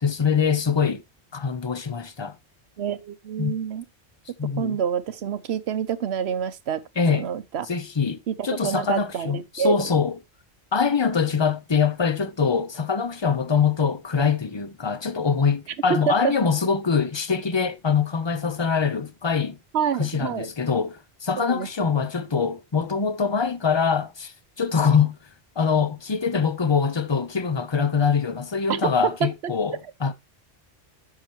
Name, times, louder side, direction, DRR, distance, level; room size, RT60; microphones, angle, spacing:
voice 1, 0.0-1.0 1.3-2.4 3.4-3.6 4.4-4.8 7.0-7.3 7.7-10.2 10.7-19.6 20.0-25.2 25.6-30.1, left 6 dB, 30° left, 0.6 m, -24 dB
voice 2, 2.8-3.8 4.6-6.8 7.1-7.7 8.3-9.9 15.9-16.3 19.7-20.5 21.4-21.7 28.7-28.8 29.2-29.3, right 8 dB, 75° right, 1.0 m, -27 dB
9.6 x 6.7 x 3.0 m
omnidirectional pair, 1.1 m